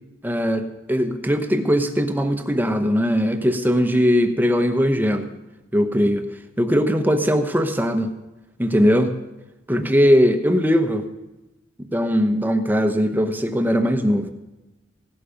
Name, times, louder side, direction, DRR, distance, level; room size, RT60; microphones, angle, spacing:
voice 1, 0.2-5.3 5.7-6.3 6.6-8.1 8.6-9.2 9.7-11.1 11.9-14.3, equal, 10° right, 7 dB, 1.1 m, -20 dB
17.0 x 11.5 x 5.2 m, 1.0 s
head